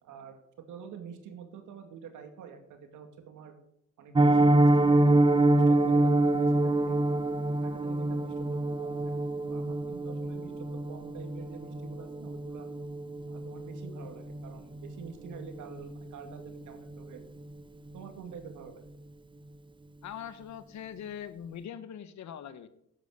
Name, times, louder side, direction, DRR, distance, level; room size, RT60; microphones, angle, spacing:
voice 1, 0.0-3.5 4.0-7.2 7.6-12.7 13.3-17.2 17.9-18.8, right 6 dB, 80° right, 6 dB, 2.3 m, -47 dB
Piano, 4.1-15.0 15.3-15.5 15.9-16.0 16.4-16.6 16.9-17.0, right 2 dB, 15° right, 0.8 m, -26 dB
voice 2, 20.0-22.7, left 9 dB, 70° left, 13 dB, 1.2 m, -42 dB
11.0 x 8.5 x 6.6 m, 0.75 s
cardioid pair, 90°, 30 cm